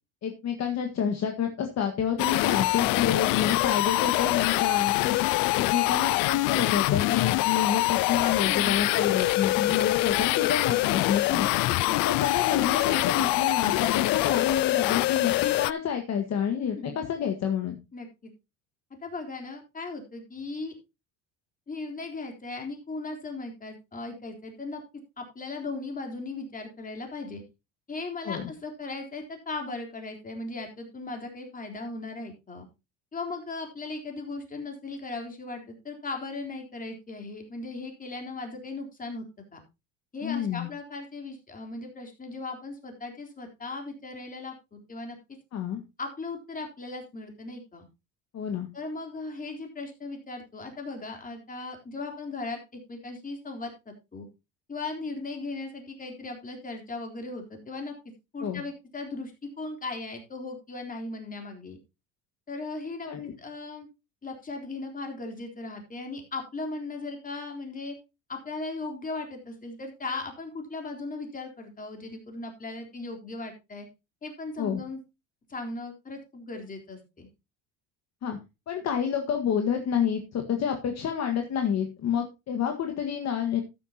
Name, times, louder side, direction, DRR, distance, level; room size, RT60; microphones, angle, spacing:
voice 1, 0.2-5.2 5.6-11.5 11.9-17.8 28.2-28.5 40.2-40.7 45.5-45.8 48.3-48.7 58.4-58.6 63.1-63.3 74.6-74.8 78.2-78.4 78.7-83.6, left 8 dB, 45° left, 4 dB, 1.7 m, -29 dB
sound 1, 2.2-15.7, left 21 dB, 65° left, 0.5 m, -25 dB
voice 2, 8.4-8.9 11.4-12.0 16.8-17.0 17.9-18.3 19.0-20.7 21.7-24.8 25.2-27.4 27.9-32.7 33.1-39.3 39.5-39.6 40.1-45.2 46.0-47.9 48.7-54.3 54.7-57.9 58.3-61.8 62.5-63.1 63.4-63.9 64.2-68.0 68.3-73.9 74.2-75.0 75.5-77.3, left 3 dB, 20° left, 3 dB, 3.8 m, -37 dB
13.0 x 10.0 x 2.9 m, 0.25 s
cardioid pair, 115°, 37 cm